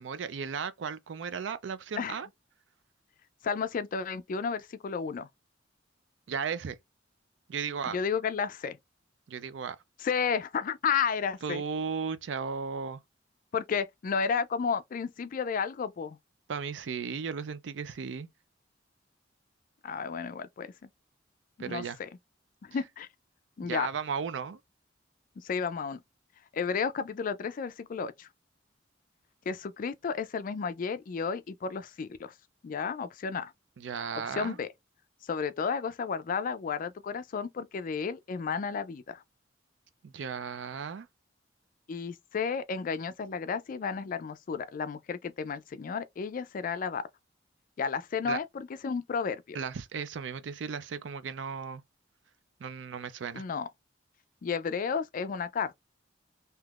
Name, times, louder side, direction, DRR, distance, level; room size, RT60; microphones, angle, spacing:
voice 1, 0.0-2.3 6.3-6.8 7.5-8.0 9.3-9.8 11.4-13.0 16.5-18.3 21.6-22.0 23.6-24.6 33.8-34.6 40.0-41.1 48.2-48.4 49.5-51.8 52.6-53.4, right 6 dB, 80° right, 0.4 m, -35 dB
voice 2, 3.4-5.3 7.9-8.8 10.0-11.6 13.5-16.2 19.8-20.7 21.7-22.1 22.6-23.1 23.6-23.9 25.4-26.0 26.5-28.3 29.5-32.3 32.6-33.5 34.3-34.7 35.2-39.2 41.9-47.0 47.8-49.6 53.3-53.7 54.4-55.8, left 6 dB, 45° left, 0.4 m, -32 dB
3.4 x 2.8 x 2.3 m
head